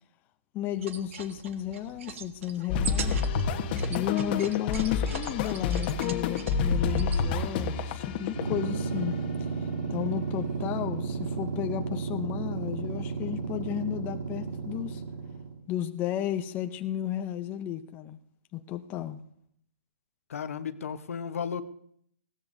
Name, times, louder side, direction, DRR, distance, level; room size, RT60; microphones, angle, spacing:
voice 1, 0.5-3.2 3.9-15.0 15.7-18.2 18.5-19.2, left 11 dB, 25° left, 7 dB, 0.7 m, -33 dB
sound 1, 0.7-7.2, right 7 dB, 55° right, 1.4 m, -42 dB
sound 2, 2.7-8.8, left 5 dB, 40° left, 1.2 m, -29 dB
sound 3, 8.2-15.6, right 4 dB, 90° right, 3.1 m, -33 dB
voice 2, 20.3-21.6, left 7 dB, 65° left, 11 dB, 1.0 m, -34 dB
20.0 x 16.5 x 2.7 m, 0.68 s
hypercardioid pair, 140°, 8 cm